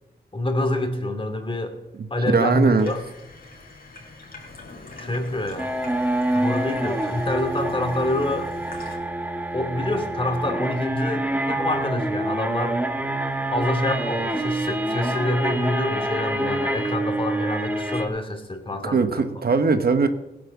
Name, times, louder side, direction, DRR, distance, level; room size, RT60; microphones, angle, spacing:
voice 1, 0.3-1.8 2.1-3.0 5.0-5.7 6.3-8.5 9.5-12.8 13.5-19.2, left 1 dB, 30° left, 6 dB, 2.9 m, -26 dB
voice 2, 2.3-2.9 18.8-20.1, right 4 dB, 60° right, 8 dB, 1.4 m, -20 dB
Water tap faucet / Sink (filling or washing), 2.8-9.0, left 2 dB, 55° left, 5.0 m, -43 dB
sound 1, 5.6-18.1, right 1 dB, 10° right, 2.4 m, -26 dB
17.0 x 10.0 x 7.3 m, 0.93 s
cardioid pair, 75°, 18 cm